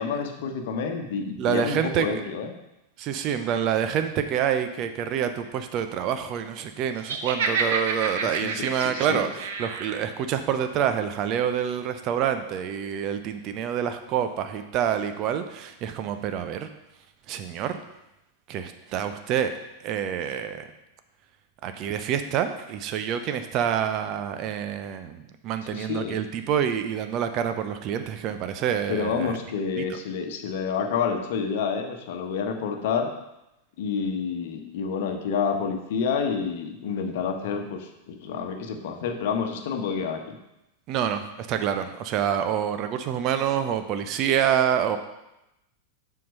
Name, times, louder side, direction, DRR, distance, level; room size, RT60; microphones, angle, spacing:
voice 1, 0.0-2.5 8.2-9.2 25.7-26.2 28.9-33.1 33.8-40.4, left 6 dB, 55° left, 5 dB, 1.1 m, -29 dB
voice 2, 1.4-2.1 3.0-16.7 17.3-17.8 18.5-19.6 19.8-20.6 21.6-29.4 29.8-30.0 40.9-45.0, right 9 dB, 40° right, 8 dB, 0.7 m, -27 dB
Laughter, 7.0-10.0, right 5 dB, 60° right, 1.0 m, -29 dB
7.6 x 5.8 x 5.4 m, 0.91 s
figure-of-eight pair, 90°, 0 cm